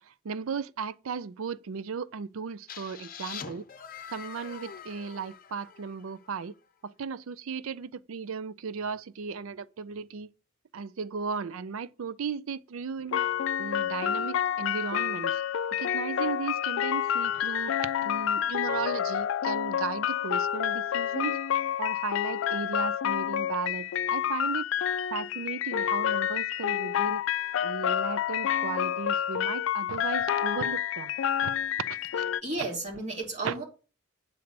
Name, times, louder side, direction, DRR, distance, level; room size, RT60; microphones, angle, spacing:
voice 1, 0.0-3.7 4.1-6.6 6.8-10.3 10.7-13.2 13.6-15.4 15.8-21.4 21.8-24.7 25.1-27.2 27.6-31.2 31.4-31.5 31.9-32.0 33.4-33.6, right 5 dB, 80° right, 0.5 m, -36 dB
sound 1, 2.7-6.4, left 7 dB, 45° left, 0.7 m, -44 dB
sound 2, 13.1-32.4, left 9 dB, 65° left, 0.3 m, -29 dB
voice 2, 32.4-33.6, right 2 dB, 35° right, 2.8 m, -33 dB
7.9 x 4.0 x 6.7 m
head